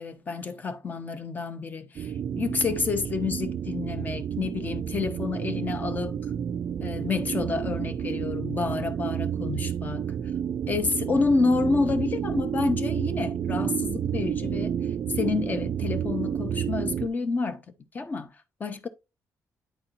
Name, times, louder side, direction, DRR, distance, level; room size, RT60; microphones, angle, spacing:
voice 1, 0.0-6.2 6.8-10.1 10.7-14.7 15.1-17.6 17.9-18.3 18.6-18.9, left 4 dB, 30° left, 0.6 m, -29 dB
sound 1, 2.0-17.1, right 8 dB, 45° right, 0.3 m, -30 dB
8.8 x 4.3 x 2.5 m
cardioid pair, 160°, 6 cm